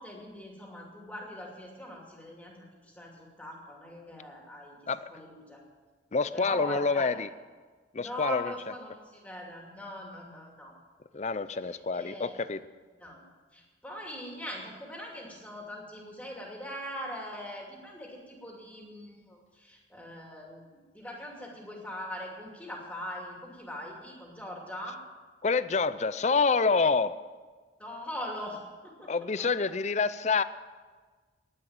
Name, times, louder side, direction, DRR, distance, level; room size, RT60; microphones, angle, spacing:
voice 1, 0.0-4.8 5.1-5.6 6.3-7.1 8.0-10.7 11.6-12.4 13.0-13.2 13.5-25.0 27.8-29.1 29.4-29.8, equal, 10° left, -1 dB, 2.5 m, -42 dB
voice 2, 6.1-7.3 7.9-8.5 11.1-12.6 25.4-27.1 29.1-30.4, left 4 dB, 35° left, 15 dB, 0.4 m, -27 dB
10.5 x 9.9 x 8.8 m, 1.4 s
head